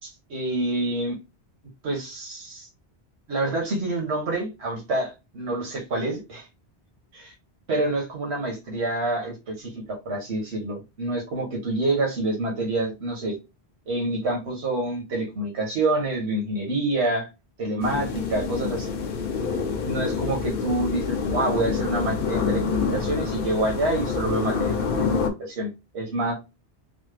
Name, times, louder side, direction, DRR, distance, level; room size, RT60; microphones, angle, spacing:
voice 1, 0.0-1.2 1.8-2.7 3.3-6.5 7.7-13.4 13.9-17.3 17.6-18.9 19.8-26.3, right 2 dB, 90° right, 0 dB, 1.3 m, -27 dB
sound 1, 17.8-25.3, left 5 dB, 60° left, 0.8 m, -27 dB
3.2 x 2.0 x 3.2 m, 0.25 s
omnidirectional pair, 1.1 m